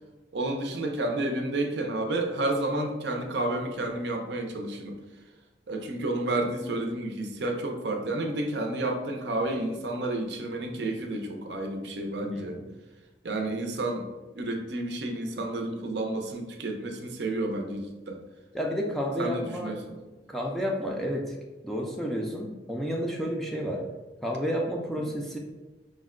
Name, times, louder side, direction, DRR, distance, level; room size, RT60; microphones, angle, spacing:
voice 1, 0.3-4.9 5.7-12.6 13.2-14.1 14.3-18.2 19.2-19.9 25.0-25.1, right 2 dB, 65° right, 3 dB, 0.6 m, -30 dB
voice 2, 12.2-12.6 18.5-19.7 20.3-21.3 21.6-23.8 24.2-25.4, equal, ahead, -1 dB, 0.4 m, -31 dB
5.0 x 2.1 x 3.6 m, 1.2 s
head